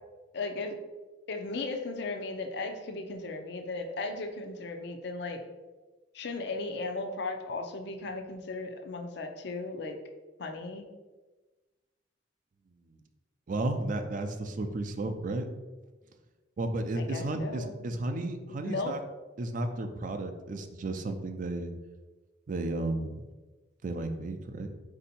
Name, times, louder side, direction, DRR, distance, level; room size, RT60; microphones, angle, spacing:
voice 1, 0.3-0.7 1.3-5.4 6.1-10.0 10.4-10.8 17.0-17.7 18.6-18.9, left 3 dB, 65° left, 5 dB, 0.5 m, -36 dB
voice 2, 13.5-15.5 16.6-19.0 19.4-21.7 22.5-23.2 23.8-24.7, right 2 dB, 45° right, 7 dB, 0.4 m, -33 dB
4.3 x 2.7 x 4.1 m, 1.2 s
head